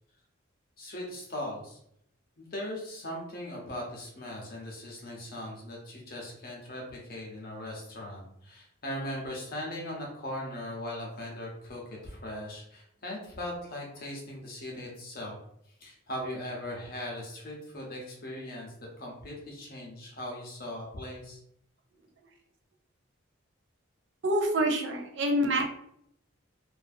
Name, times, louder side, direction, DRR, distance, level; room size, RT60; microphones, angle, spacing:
voice 1, 0.8-1.8 2.4-15.4 15.8-18.7 19.0-21.4, left 1 dB, 45° left, -2 dB, 0.8 m, -39 dB
voice 2, 24.2-25.6, right 1 dB, 55° right, 2 dB, 0.4 m, -26 dB
2.6 x 2.4 x 2.6 m, 0.72 s
head